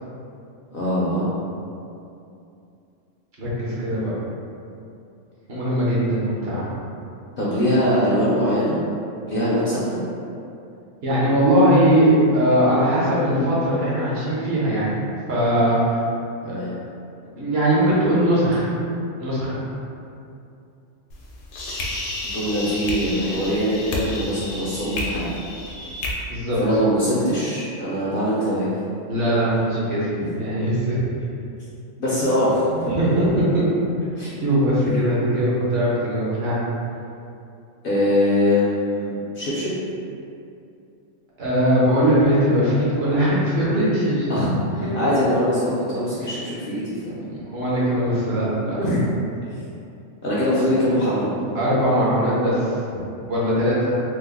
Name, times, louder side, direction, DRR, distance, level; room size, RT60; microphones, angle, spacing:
voice 1, 0.7-1.3 7.4-8.7 9.3-10.0 16.4-16.7 22.2-25.2 26.6-28.6 30.2-30.3 32.0-32.9 34.2-34.3 37.8-39.8 44.3-47.3 48.6-49.0 50.2-51.3, equal, 60° left, -8 dB, 0.6 m, -22 dB
voice 2, 3.4-4.1 5.5-6.8 11.0-15.0 15.3-16.0 16.4-16.6 17.3-18.7 19.2-19.6 26.3-26.6 29.1-31.0 32.9-33.3 33.5-33.6 34.4-36.6 41.4-44.3 44.8-44.9 46.2-46.3 47.3-48.8 51.5-52.7 53.3-53.9, equal, 55° right, -8 dB, 1.0 m, -20 dB
sound 1, 21.1-26.1, left 1 dB, 85° left, 1.0 m, -31 dB
3.1 x 2.1 x 3.5 m, 2.6 s
omnidirectional pair, 1.3 m